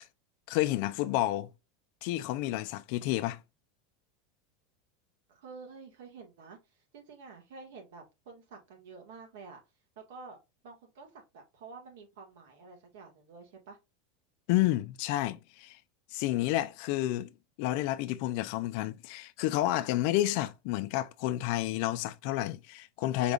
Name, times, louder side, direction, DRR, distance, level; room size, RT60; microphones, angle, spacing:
voice 1, 0.5-1.5 2.0-3.4 14.5-15.8 16.1-17.3 17.6-23.3, left 15 dB, 60° left, 0.5 m, -30 dB
voice 2, 5.3-9.6 10.1-10.4 10.6-13.8, right 4 dB, 75° right, 1.8 m, -49 dB
4.8 x 3.5 x 2.4 m
supercardioid pair, 140°, 0 cm